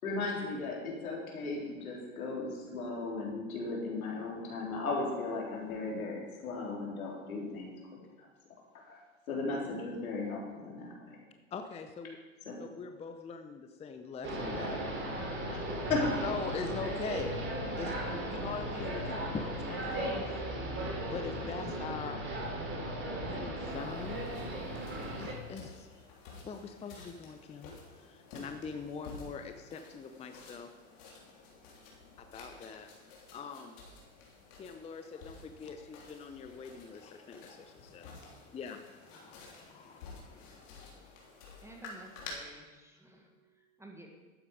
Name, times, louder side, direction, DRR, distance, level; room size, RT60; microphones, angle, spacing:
voice 1, 0.0-7.7 8.8-9.0 9.3-11.2 12.5-12.6 15.5-15.6 15.9-16.1, left 3 dB, 80° left, -2 dB, 3.8 m, -36 dB
voice 2, 11.5-12.2 12.6-14.8 16.2-17.4 17.8-20.3 21.0-22.2 23.2-24.3 25.2-25.9 26.4-30.7 32.2-32.9 33.3-33.8 34.5-41.1, left 5 dB, 15° left, 7 dB, 0.6 m, -43 dB
sound 1, 14.2-25.3, right 1 dB, 25° right, 3.3 m, -36 dB
sound 2, 23.7-42.3, left 4 dB, 60° left, 3.3 m, -52 dB
voice 3, 41.6-44.1, right 1 dB, 5° right, 2 dB, 1.6 m, -53 dB
12.0 x 8.7 x 4.9 m, 1.3 s
hypercardioid pair, 100°, 42 cm